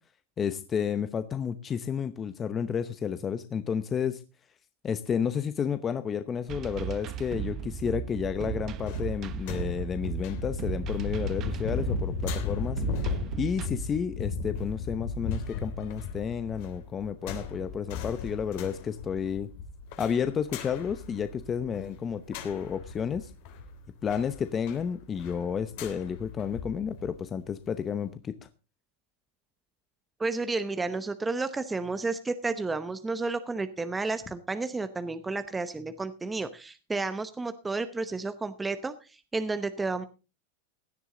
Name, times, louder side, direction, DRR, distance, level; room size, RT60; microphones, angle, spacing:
voice 1, 0.4-4.2 4.8-19.5 20.0-23.3 24.0-28.3, left 7 dB, 20° left, 11 dB, 0.8 m, -31 dB
sound 1, 6.5-13.7, right 9 dB, 35° right, 1.0 m, -36 dB
sound 2, 8.7-27.1 27.5-27.6, left 4 dB, 55° left, 3.4 m, -36 dB
voice 2, 30.2-40.0, right 3 dB, 10° right, 10 dB, 0.9 m, -31 dB
16.5 x 11.0 x 3.8 m, 0.31 s
supercardioid pair, 150°, 0 cm